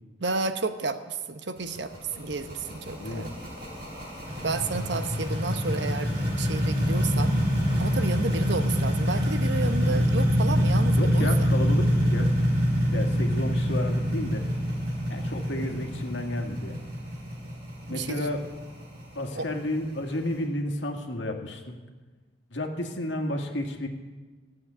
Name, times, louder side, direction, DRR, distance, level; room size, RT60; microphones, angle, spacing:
voice 1, 0.2-3.3 4.4-7.4 7.8-11.5 17.9-18.3 19.3-19.5, right 3 dB, 65° right, 9 dB, 0.9 m, -31 dB
sound 1, 1.6-20.3, equal, 50° right, 4.2 m, -26 dB
voice 2, 3.0-3.3 11.0-12.4 12.9-14.5 15.1-16.8 17.9-18.4 19.2-21.8 22.5-23.9, left 1 dB, 75° left, 3 dB, 1.8 m, -32 dB
15.0 x 7.8 x 9.8 m, 1.3 s
head